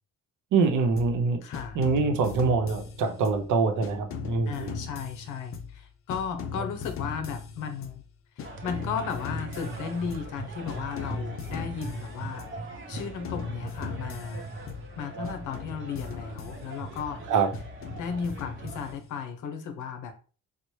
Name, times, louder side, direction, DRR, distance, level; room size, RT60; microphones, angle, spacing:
voice 1, 0.5-1.4 1.7-4.7 15.1-15.3 17.3-17.5, right 4 dB, 75° right, 6 dB, 0.7 m, -25 dB
sound 1, 1.0-1.2 1.5-3.5 3.8-5.8 6.1-8.0 8.4-10.4 10.7-12.6 13.0-15.0 15.2-17.1 17.5-19.2, left 5 dB, 45° left, 0.5 m, -39 dB
voice 2, 1.4-1.8 4.5-8.0 8.4-12.5 12.9-14.5 15.0-17.2 18.0-20.1, left 6 dB, 85° left, 7 dB, 0.7 m, -35 dB
sound 2, 8.4-18.9, right 3 dB, 40° right, 0.7 m, -41 dB
4.1 x 2.0 x 3.1 m, 0.38 s
cardioid pair, 90°, 30 cm